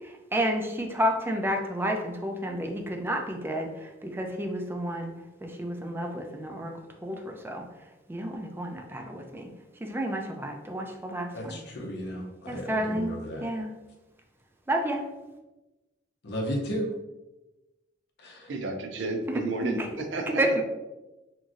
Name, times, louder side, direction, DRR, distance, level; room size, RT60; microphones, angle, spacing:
voice 1, 0.3-5.1 5.4-6.7 7.0-7.6 8.1-9.5 9.8-11.6 12.5-13.1 13.4-13.7 14.7-15.0 19.3-19.9 20.4-20.6, right 1 dB, 10° right, 3 dB, 0.3 m, -30 dB
voice 2, 11.3-13.5 16.2-17.0 18.2-18.5, equal, 60° left, 1 dB, 0.6 m, -34 dB
voice 3, 18.5-20.6, right 2 dB, 70° right, 3 dB, 0.5 m, -32 dB
3.0 x 2.4 x 2.5 m, 1.0 s
head